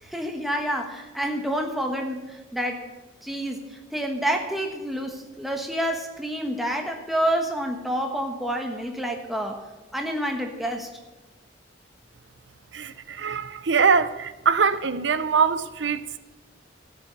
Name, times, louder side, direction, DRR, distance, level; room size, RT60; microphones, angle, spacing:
voice 1, 0.0-2.9 3.2-9.6 9.9-10.9, equal, ahead, 1.3 m, -28 dB
voice 2, 12.7-16.0, right 5 dB, 75° right, 0.7 m, -23 dB
13.0 x 7.0 x 7.8 m
head